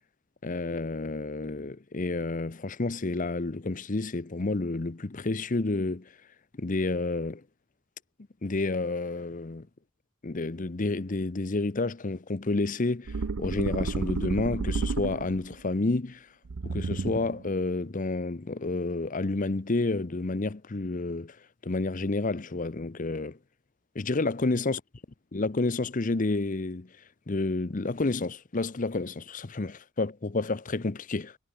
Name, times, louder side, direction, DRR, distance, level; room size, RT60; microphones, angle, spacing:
voice 1, 0.4-6.1 6.6-7.4 8.4-9.7 10.2-16.3 16.6-21.4 21.6-23.4 23.9-24.8 25.3-26.9 27.3-31.4, left 3 dB, 40° left, 0.8 m, -30 dB
sound 1, 13.1-15.5 16.5-17.5, right 4 dB, 90° right, 0.6 m, -31 dB
head